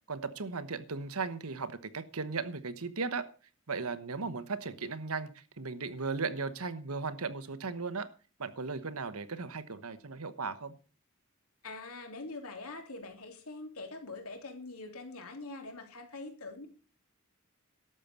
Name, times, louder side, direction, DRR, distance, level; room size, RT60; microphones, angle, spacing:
voice 1, 0.1-3.3 3.7-8.1 8.4-10.7, right 4 dB, 80° right, 1.1 m, -36 dB
voice 2, 11.6-16.7, left 3 dB, 80° left, 3.3 m, -44 dB
12.5 x 7.7 x 6.8 m
head